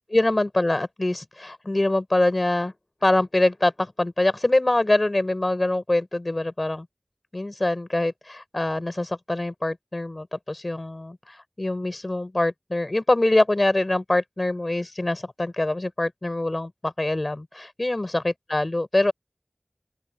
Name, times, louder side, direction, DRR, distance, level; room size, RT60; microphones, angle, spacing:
voice 1, 0.1-2.7 3.0-6.9 7.3-19.1, left 2 dB, 50° left, 7.8 m, -24 dB
open air
wide cardioid pair, 45°, 0 cm